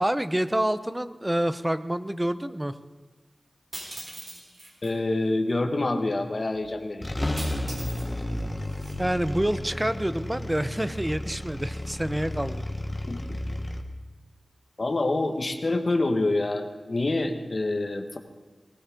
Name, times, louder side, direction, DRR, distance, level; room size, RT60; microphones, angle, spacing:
voice 1, 0.0-2.7 9.0-12.7, right 1 dB, 15° right, 12 dB, 0.7 m, -27 dB
sound 1, 3.7-4.9 7.4-8.1 8.4-9.0, right 1 dB, 50° right, 3.6 m, -40 dB
voice 2, 4.8-7.1 13.1-13.4 14.8-18.2, left 2 dB, 45° left, 5 dB, 1.6 m, -27 dB
sound 2, 6.5-6.7 7.0-13.8, left 1 dB, 20° left, 1.3 m, -32 dB
20.0 x 18.0 x 3.8 m, 1.2 s
wide cardioid pair, 80°, 0 cm